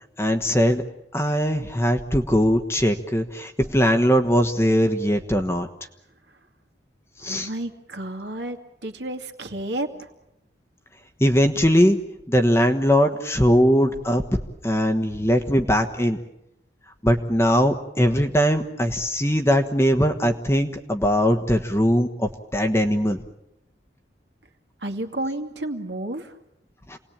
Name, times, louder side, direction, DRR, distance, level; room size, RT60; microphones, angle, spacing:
voice 1, 0.2-0.8 1.1-5.7 7.2-7.5 11.2-12.0 12.3-16.2 17.0-23.2 26.9-27.0, equal, 15° left, 5 dB, 1.2 m, -20 dB
voice 2, 7.2-10.1 24.8-26.3, right 1 dB, 70° right, 6 dB, 2.4 m, -31 dB
28.0 x 19.5 x 8.8 m, 0.87 s
head